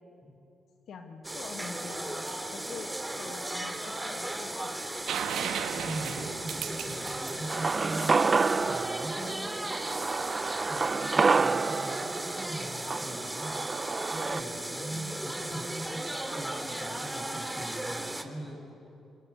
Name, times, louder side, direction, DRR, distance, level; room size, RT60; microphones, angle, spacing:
voice 1, 0.9-4.7 8.5-8.8 14.9-15.2, left 4 dB, 70° left, 5 dB, 1.9 m, -45 dB
sound 1, 1.2-18.2, right 1 dB, 10° right, 2.4 m, -36 dB
sound 2, 5.1-8.8 10.7-10.8, right 8 dB, 75° right, 1.3 m, -36 dB
voice 2, 5.7-9.7 10.5-18.6, right 1 dB, 5° left, 3 dB, 6.3 m, -41 dB
sound 3, 7.5-14.4, right 4 dB, 40° right, 0.6 m, -29 dB
26.5 x 21.5 x 8.1 m, 2.8 s
supercardioid pair, 60°, 0 cm